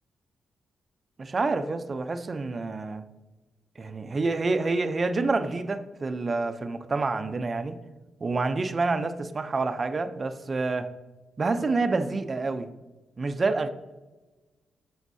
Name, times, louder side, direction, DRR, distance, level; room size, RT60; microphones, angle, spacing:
voice 1, 1.2-3.0 3.8-7.8 8.2-10.9 11.4-12.7 13.2-13.7, right 3 dB, 35° right, 10 dB, 0.6 m, -28 dB
11.0 x 6.4 x 2.7 m, 1.2 s
cardioid pair, 100°, 0 cm